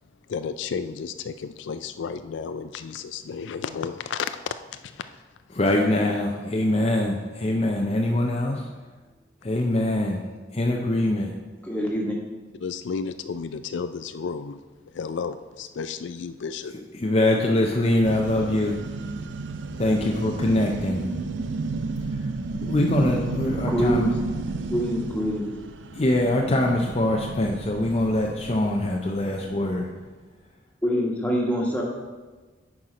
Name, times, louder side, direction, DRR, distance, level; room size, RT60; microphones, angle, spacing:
voice 1, 0.3-4.5 4.8-5.2 12.6-14.6 14.9-16.7, left 6 dB, 85° left, 11 dB, 0.4 m, -32 dB
voice 2, 5.5-8.7 9.4-10.2 10.5-11.3 16.9-18.8 19.8-21.1 22.6-24.1 25.9-29.9, left 1 dB, 35° left, 1 dB, 0.6 m, -23 dB
voice 3, 11.7-12.2 23.7-24.1 24.7-25.5 30.8-31.8, equal, 10° left, -2 dB, 1.5 m, -25 dB
sound 1, 18.0-29.9, right 3 dB, 85° right, 0.5 m, -32 dB
9.7 x 4.7 x 5.1 m, 1.3 s
head